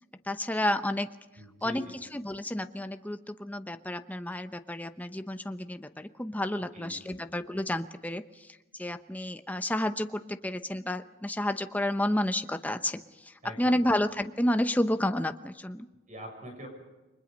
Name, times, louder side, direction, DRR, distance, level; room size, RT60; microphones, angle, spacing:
voice 1, 0.3-1.1 1.6-8.5 8.8-15.9, left 1 dB, 10° left, 8 dB, 0.9 m, -31 dB
voice 2, 1.4-1.9 6.7-7.2 13.4-13.8 16.1-16.7, equal, 40° right, 3 dB, 6.7 m, -44 dB
30.0 x 23.5 x 5.3 m, 1.1 s
head